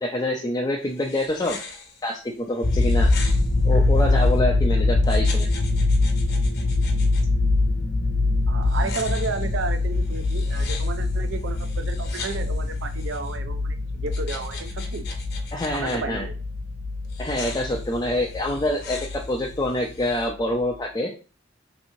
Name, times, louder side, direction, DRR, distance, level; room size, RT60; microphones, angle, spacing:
voice 1, 0.0-1.6 2.0-3.1 3.6-5.5 15.5-16.3 17.2-21.1, left 1 dB, 20° left, -1 dB, 0.4 m, -26 dB
sound 1, 0.8-4.4 5.0-7.2 8.6-13.4 14.1-16.0 17.0-20.3, left 4 dB, 55° left, 0.8 m, -41 dB
sound 2, 2.6-19.7 20.0-20.3, left 2 dB, 85° left, 1.0 m, -23 dB
voice 2, 8.5-15.1 15.7-16.4, right 4 dB, 70° right, 9 dB, 0.4 m, -33 dB
3.2 x 3.0 x 2.6 m, 0.36 s
head